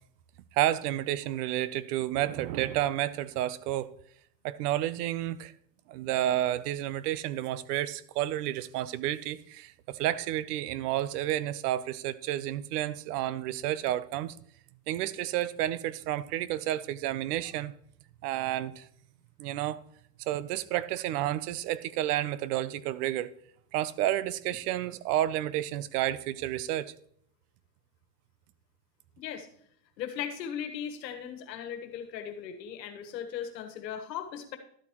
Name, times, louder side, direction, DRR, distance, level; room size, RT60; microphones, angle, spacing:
voice 1, 0.5-3.9 4.4-5.5 5.9-14.4 14.9-17.7 18.2-18.9 19.4-19.8 20.2-23.3 23.7-26.9, right 13 dB, 70° right, 0.7 m, -30 dB
voice 2, 29.2-29.5 30.0-34.6, left 9 dB, 90° left, 1.5 m, -38 dB
12.5 x 8.4 x 3.0 m
supercardioid pair, 130°, 49 cm